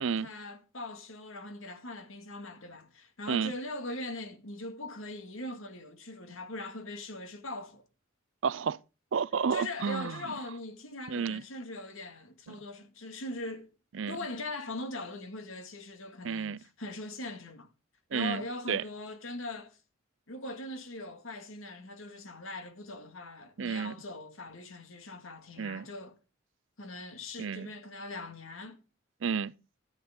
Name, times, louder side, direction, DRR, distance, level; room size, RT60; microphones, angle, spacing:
voice 1, 0.0-7.8 9.5-13.7 14.1-17.7 18.1-19.8 20.3-26.2 26.8-28.8, left 2 dB, 80° left, 2.1 m, -41 dB
voice 2, 8.4-8.8 9.1-10.2 11.1-11.4 13.9-14.2 16.2-16.6 18.1-18.4 18.7-18.8 23.6-23.9 25.6-25.9 27.4-27.7 29.2-29.5, right 6 dB, 65° right, 0.5 m, -31 dB
13.5 x 10.5 x 3.7 m
head